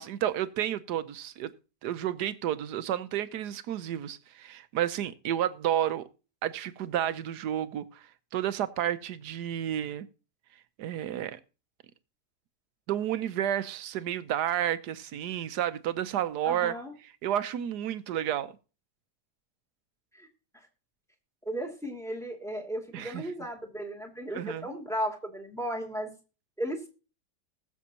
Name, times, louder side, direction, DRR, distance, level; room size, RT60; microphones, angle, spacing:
voice 1, 0.0-1.5 1.8-6.1 6.4-8.0 8.3-10.1 10.8-11.4 12.9-16.7 17.2-18.5 22.9-23.2 24.3-24.7, right 11 dB, 75° right, 1.3 m, -31 dB
voice 2, 16.4-16.9 20.1-20.3 21.4-26.1 26.6-26.9, equal, ahead, 2.3 m, -35 dB
20.5 x 7.1 x 2.9 m
omnidirectional pair, 1.8 m